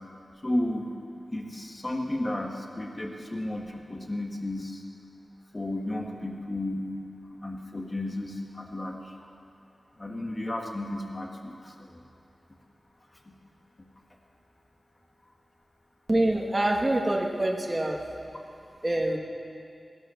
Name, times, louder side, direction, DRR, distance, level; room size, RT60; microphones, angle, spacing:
voice 1, 0.4-0.9 1.3-4.8 5.5-6.9 7.4-9.1 10.0-12.0 13.3-13.4 13.8-13.9, left 1 dB, 25° left, 1 dB, 1.7 m, -33 dB
voice 2, 16.1-18.0 18.8-19.2, right 1 dB, 25° right, 0 dB, 1.4 m, -25 dB
18.5 x 11.5 x 6.6 m, 2.4 s
wide cardioid pair, 95°, 0 cm